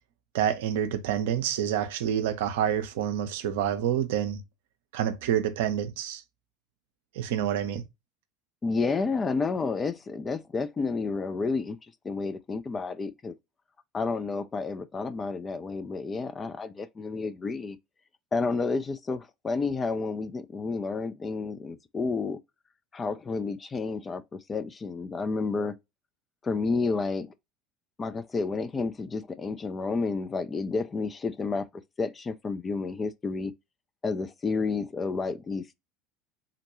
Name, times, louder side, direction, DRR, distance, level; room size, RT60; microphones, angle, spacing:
voice 1, 0.3-4.4 4.9-6.2 7.1-7.8, right 10 dB, 65° right, 0.5 m, -28 dB
voice 2, 8.6-11.8 12.0-13.4 13.9-17.8 18.3-22.4 22.9-25.8 26.4-27.3 28.0-31.7 32.0-33.5 34.0-35.7, left 4 dB, 25° left, 0.3 m, -30 dB
3.7 x 2.2 x 2.8 m
figure-of-eight pair, 75°, 0 cm